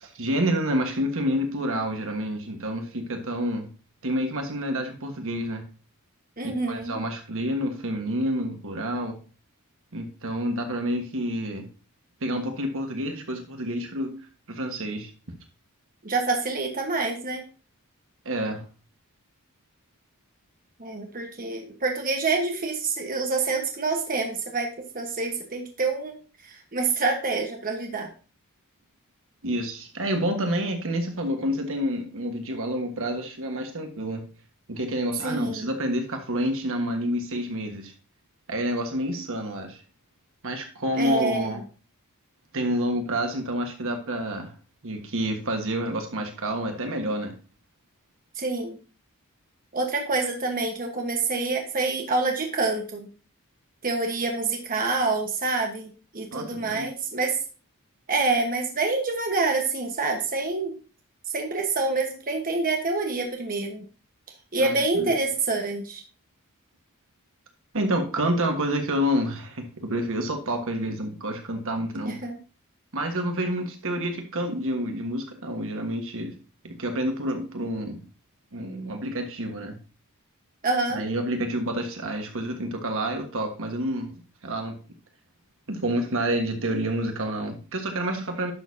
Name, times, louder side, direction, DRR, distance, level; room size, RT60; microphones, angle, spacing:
voice 1, 0.0-3.7 4.0-5.6 6.7-9.2 9.9-11.7 12.2-14.2 14.5-15.1 18.2-18.6 29.4-34.3 34.7-37.9 38.5-39.8 40.4-41.6 42.5-44.5 44.8-47.3 56.3-56.9 64.6-65.1 67.7-72.2 72.9-76.3 76.6-78.0 78.5-79.8 80.9-84.8 85.7-88.5, equal, 65° right, 4 dB, 1.5 m, -28 dB
voice 2, 6.4-7.0 16.0-17.4 20.8-26.2 26.4-28.1 35.2-35.7 40.9-41.5 48.4-48.8 49.7-53.1 53.8-57.4 58.1-60.7 61.3-63.9 64.5-66.0 72.0-72.4 80.6-81.0, right 3 dB, 40° right, 2 dB, 1.4 m, -27 dB
11.0 x 6.5 x 2.8 m, 0.36 s
head